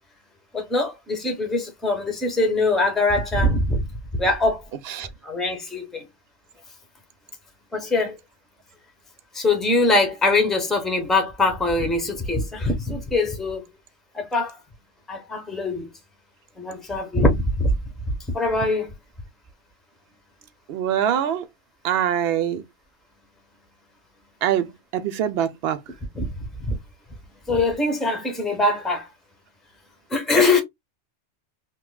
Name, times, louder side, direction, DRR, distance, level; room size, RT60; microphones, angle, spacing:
voice 1, 0.5-3.9 4.2-4.6 5.2-6.1 7.7-8.2 9.3-13.7 14.1-14.6 15.1-15.9 16.6-17.7 18.3-18.9 26.1-26.3 26.6-26.8 27.5-29.1 30.1-30.6, left 2 dB, ahead, 0.8 m, -22 dB
voice 2, 20.7-21.4 21.8-22.6 24.4-25.8, right 10 dB, 65° right, 0.8 m, -23 dB
5.3 x 2.2 x 2.2 m
omnidirectional pair, 1.2 m